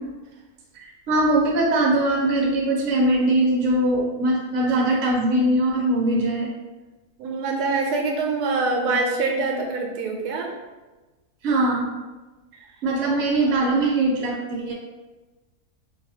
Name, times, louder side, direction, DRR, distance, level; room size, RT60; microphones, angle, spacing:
voice 1, 0.7-6.5 11.4-11.9 12.8-14.7, right 1 dB, 65° right, -3 dB, 0.9 m, -21 dB
voice 2, 7.2-10.5, right 3 dB, 90° right, 1 dB, 1.1 m, -24 dB
4.7 x 2.2 x 2.7 m, 1.2 s
omnidirectional pair, 1.6 m